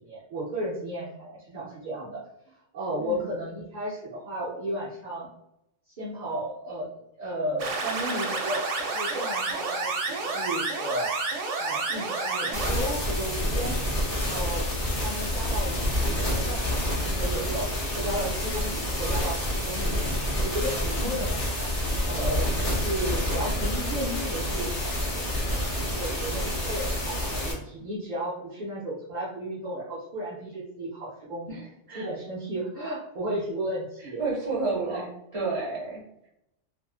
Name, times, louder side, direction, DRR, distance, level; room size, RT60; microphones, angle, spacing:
voice 1, 0.0-2.2 2.7-5.3 5.9-6.9 7.2-11.1 11.6-13.8 14.2-14.6 15.0-20.0 20.4-21.7 22.0-25.2 25.9-31.6 31.9-34.2 34.8-35.1, right 1 dB, 50° right, -8 dB, 0.6 m, -34 dB
voice 2, 3.0-3.3 20.9-21.3 31.5-32.1 34.0-35.1 35.3-36.3, right 3 dB, 25° right, -6 dB, 1.2 m, -32 dB
sound 1, 7.6-12.7, right 3 dB, 85° right, 0.9 m, -30 dB
sound 2, 12.5-27.5, left 1 dB, 35° left, 0.8 m, -28 dB
2.6 x 2.5 x 2.3 m, 0.82 s
omnidirectional pair, 1.3 m